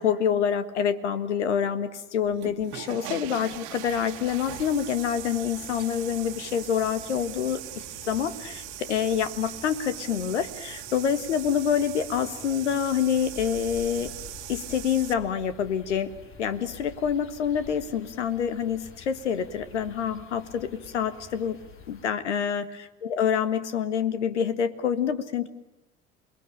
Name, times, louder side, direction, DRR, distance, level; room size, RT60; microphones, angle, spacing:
voice 1, 0.0-7.6 8.1-14.1 14.5-16.1 16.4-21.6 21.9-25.5, left 8 dB, 80° left, 13 dB, 1.6 m, -27 dB
sound 1, 2.3-15.1, right 15 dB, 60° right, 1.8 m, -40 dB
sound 2, 3.8-22.1, left 5 dB, 35° left, 3.2 m, -49 dB
28.5 x 21.0 x 8.8 m, 0.97 s
figure-of-eight pair, 65°, 35 cm